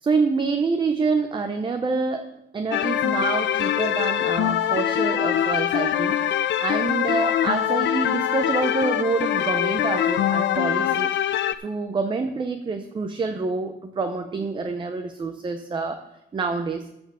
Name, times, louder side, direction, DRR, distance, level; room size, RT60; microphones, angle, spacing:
voice 1, 0.0-2.3 2.5-6.2 6.4-11.1 11.6-16.0 16.3-16.9, right 4 dB, 25° right, 6 dB, 0.6 m, -27 dB
sound 1, 2.7-11.5, left 10 dB, 65° left, 0.5 m, -23 dB
13.5 x 4.5 x 7.4 m, 0.87 s
cardioid pair, 145°, 20 cm